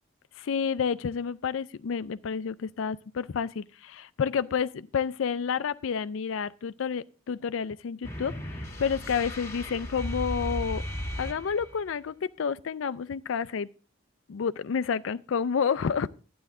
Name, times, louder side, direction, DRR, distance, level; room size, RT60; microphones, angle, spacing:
voice 1, 0.4-10.8 11.2-13.7 14.3-16.1, left 6 dB, 70° left, 0.4 m, -30 dB
sound 1, 8.0-11.9, equal, 15° left, 1.7 m, -36 dB
12.0 x 9.3 x 3.6 m
head